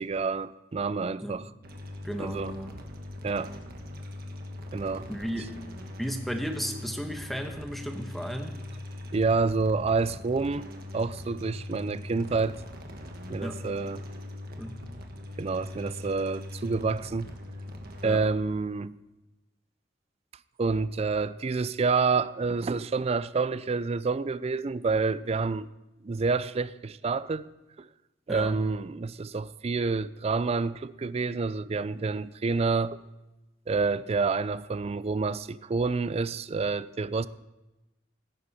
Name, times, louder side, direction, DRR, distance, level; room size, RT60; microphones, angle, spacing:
voice 1, 0.0-1.5 2.2-2.5 3.2-3.5 4.7-5.1 9.1-10.7 10.9-12.6 13.3-14.0 15.4-17.3 18.0-18.9 20.6-25.7 26.0-27.5 27.8-27.9 28.3-33.0 33.7-37.3, right 4 dB, 35° right, 0.4 m, -28 dB
sound 1, 1.6-18.1, left 1 dB, 55° right, 1.5 m, -41 dB
voice 2, 2.0-2.7 5.1-5.5 6.0-8.6 13.4-13.7 14.6-14.8 18.0-18.2 28.3-28.6, equal, ahead, 1.2 m, -34 dB
16.5 x 9.6 x 4.2 m
head